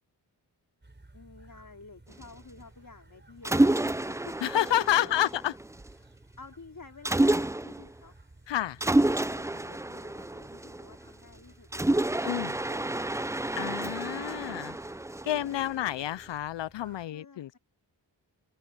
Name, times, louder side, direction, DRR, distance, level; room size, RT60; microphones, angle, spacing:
sound 1, 0.8-17.1, right 2 dB, 25° right, 5.2 m, -56 dB
voice 1, 1.1-4.4 5.0-5.3 6.4-8.2 8.5-13.1 17.1-17.6, left 4 dB, 45° left, 4.6 m, -51 dB
Mechanisms, 3.4-5.9 7.0-7.9 8.8-11.1 11.7-15.9, right 1 dB, 5° right, 0.5 m, -29 dB
voice 2, 4.4-5.5 8.5-8.8 12.2-12.5 13.6-14.8 15.2-17.6, left 12 dB, 70° left, 0.6 m, -29 dB
open air
cardioid pair, 45°, 44 cm